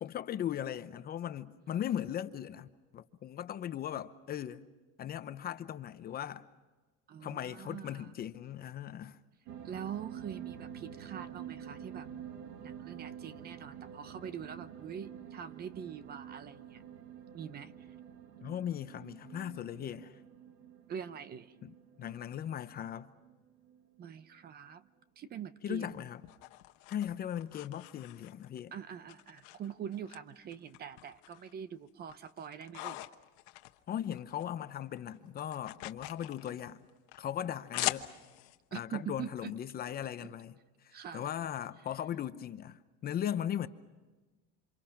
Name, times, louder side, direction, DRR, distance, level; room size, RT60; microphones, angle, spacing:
voice 1, 0.0-2.7 2.9-4.7 5.0-6.5 7.2-9.2 18.4-20.2 21.6-23.1 25.6-26.2 26.9-28.7 33.9-36.8 37.2-38.1 38.7-40.5 40.8-43.7, left 10 dB, 30° left, 0.8 m, -38 dB
voice 2, 7.1-8.1 9.6-12.1 12.6-16.8 17.3-17.9 20.9-21.5 24.0-24.9 25.2-26.0 28.7-33.0 37.8-38.0 38.7-39.5 40.2-40.3 40.9-41.3, right 8 dB, 30° right, 0.8 m, -44 dB
sound 1, 9.5-24.0 24.4-24.5, right 9 dB, 75° right, 2.1 m, -48 dB
sound 2, 25.7-28.6 29.1-30.2 30.5-31.5 31.9-34.5 34.8-38.6, left 19 dB, 65° left, 1.2 m, -42 dB
28.5 x 27.5 x 5.9 m
cardioid pair, 155°, 32 cm